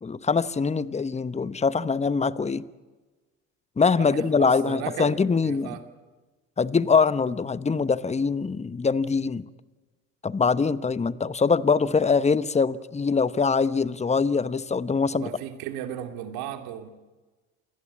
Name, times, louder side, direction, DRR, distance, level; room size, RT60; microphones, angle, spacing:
voice 1, 0.0-2.6 3.8-5.8 6.6-9.5 10.2-15.3, left 5 dB, 15° left, 1.0 m, -23 dB
voice 2, 4.0-5.1 5.4-5.8 15.1-16.9, right 10 dB, 70° right, 3.0 m, -35 dB
28.0 x 19.5 x 8.3 m
hypercardioid pair, 70°, 39 cm